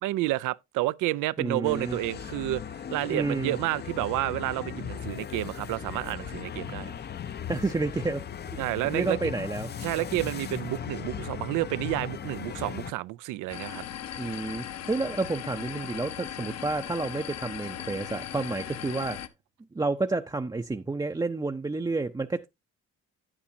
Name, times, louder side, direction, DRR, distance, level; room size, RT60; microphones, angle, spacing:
voice 1, 0.0-2.6 2.9-6.9 8.6-9.2 9.8-13.8, right 17 dB, 90° right, 0.5 m, -30 dB
voice 2, 1.4-2.0 3.1-3.6 7.5-8.3 8.9-9.7 14.2-19.2 19.7-22.5, right 3 dB, 15° right, 0.5 m, -30 dB
sound 1, 1.6-12.9, left 8 dB, 35° left, 0.5 m, -38 dB
sound 2, 13.5-19.3, left 10 dB, 60° left, 0.9 m, -38 dB
9.8 x 8.6 x 2.7 m
cardioid pair, 90°, 30 cm